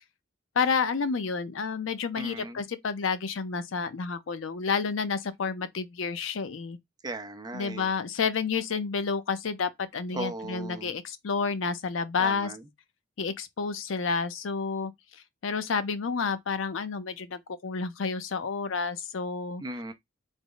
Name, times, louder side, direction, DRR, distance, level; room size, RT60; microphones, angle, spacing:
voice 1, 0.6-6.8 7.5-12.5 13.2-14.9 15.4-19.6, left 5 dB, 85° left, 0.5 m, -30 dB
voice 2, 2.1-2.6 7.0-7.9 10.1-11.0 12.2-12.7 19.6-19.9, right 2 dB, 20° right, 0.5 m, -37 dB
3.5 x 2.0 x 3.8 m
head